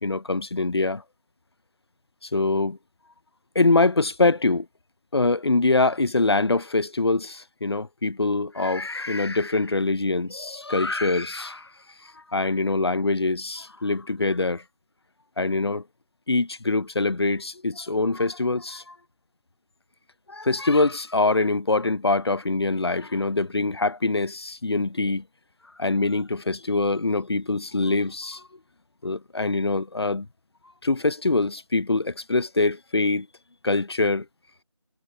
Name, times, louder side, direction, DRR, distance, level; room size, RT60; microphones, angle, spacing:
voice 1, 0.0-1.0 2.2-2.8 3.6-4.7 5.1-11.7 12.3-14.6 15.4-15.8 16.3-19.0 20.3-25.2 25.8-28.4 29.0-30.3 30.8-33.3 33.6-34.3, left 3 dB, 55° left, 0.5 m, -24 dB
figure-of-eight pair, 175°, 16 cm